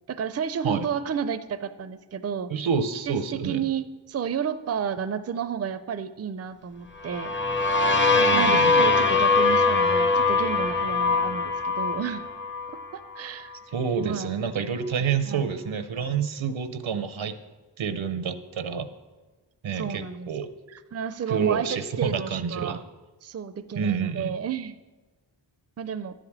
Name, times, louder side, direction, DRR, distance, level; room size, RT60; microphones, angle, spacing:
voice 1, 0.1-2.5 3.1-7.3 8.3-12.2 12.9-13.6 14.0-14.3 15.3-15.4 19.7-20.3 20.9-22.8 23.2-24.8 25.8-26.1, right 7 dB, 35° right, 12 dB, 0.4 m, -31 dB
voice 2, 2.5-3.6 8.1-8.8 13.7-17.3 17.8-18.9 19.6-20.5 21.3-22.8 23.8-24.3, right 6 dB, 85° right, 11 dB, 0.7 m, -28 dB
sound 1, 7.0-12.9, left 3 dB, 25° left, 0.7 m, -22 dB
11.5 x 5.0 x 7.2 m, 1.3 s
wide cardioid pair, 70°, 45 cm